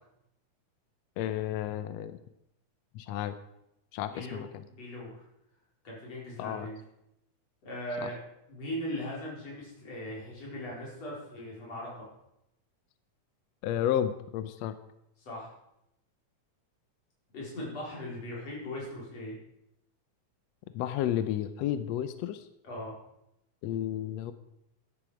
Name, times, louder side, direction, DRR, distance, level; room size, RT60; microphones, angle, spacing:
voice 1, 1.2-2.2 2.9-3.3 3.9-4.6 6.4-6.7 8.0-8.1 13.6-14.7 20.7-22.5 23.6-24.3, left 11 dB, 75° left, 11 dB, 1.6 m, -32 dB
voice 2, 4.1-5.2 5.8-6.8 7.6-8.2 8.5-12.1 15.2-15.5 17.3-19.4 22.6-22.9, left 1 dB, 50° left, -4 dB, 5.6 m, -39 dB
13.5 x 11.0 x 5.1 m, 0.83 s
omnidirectional pair, 3.6 m